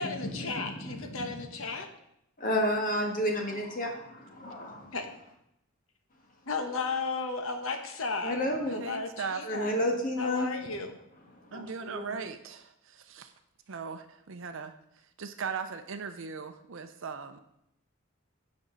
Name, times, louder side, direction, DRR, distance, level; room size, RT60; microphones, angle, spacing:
voice 1, 0.0-1.9 4.9-5.1 6.5-9.7 10.2-11.0, left 4 dB, 70° left, 5 dB, 1.2 m, -34 dB
voice 2, 0.8-1.4 2.4-4.9 8.2-8.8 9.4-10.5 11.5-12.1, left 1 dB, 40° left, 1 dB, 1.7 m, -31 dB
voice 3, 8.7-9.4 11.5-13.3 13.7-14.7 15.2-17.4, right 5 dB, 65° right, 8 dB, 0.6 m, -38 dB
16.0 x 5.3 x 3.9 m, 0.79 s
head